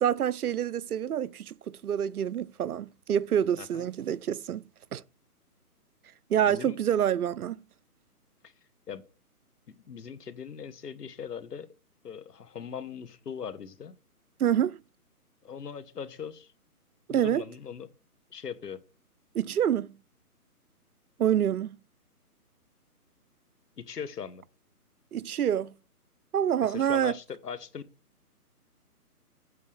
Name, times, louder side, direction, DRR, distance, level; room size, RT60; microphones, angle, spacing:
voice 1, 0.0-1.5 1.8-4.6 4.9-5.0 6.3-7.6 14.4-14.8 17.1-17.4 19.3-20.0 21.2-21.8 25.1-25.7 26.3-27.1, right 9 dB, 70° right, 0.6 m, -27 dB
voice 2, 6.5-6.8 8.4-8.5 8.9-9.0 9.7-11.7 12.0-13.9 15.4-16.5 17.1-17.9 18.3-18.8 23.8-24.4 26.6-27.8, left 7 dB, 85° left, 1.2 m, -40 dB
8.4 x 4.1 x 6.4 m
hypercardioid pair, 165°, 46 cm